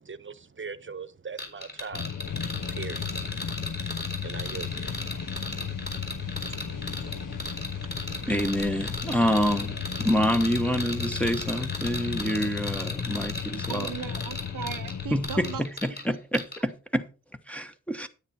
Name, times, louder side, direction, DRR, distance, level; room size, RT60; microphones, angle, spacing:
voice 1, 0.0-2.4 2.7-3.1 4.2-5.0, right 5 dB, 35° right, 1.0 m, -40 dB
sound 1, 1.4-16.1 16.3-16.6, left 1 dB, 30° left, 4.1 m, -36 dB
sound 2, 1.9-15.6, left 8 dB, 55° left, 0.8 m, -35 dB
sound 3, 2.2-11.3, right 6 dB, 80° left, 5.0 m, -45 dB
voice 2, 8.3-13.9 15.1-17.0 17.5-18.1, equal, 5° left, 1.1 m, -27 dB
voice 3, 13.7-15.6, right 9 dB, 75° right, 0.8 m, -37 dB
9.7 x 9.3 x 4.3 m
wide cardioid pair, 95°, 32 cm